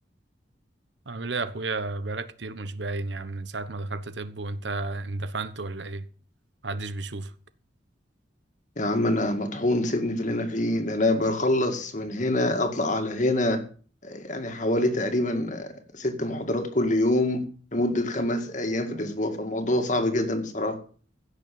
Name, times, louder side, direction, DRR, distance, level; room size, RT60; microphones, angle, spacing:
voice 1, 1.1-6.0 6.6-7.3, right 3 dB, 75° right, 1.1 m, -32 dB
voice 2, 8.8-13.6 14.0-17.4 17.7-20.8, left 1 dB, 45° left, 2.0 m, -25 dB
16.0 x 6.7 x 7.0 m
head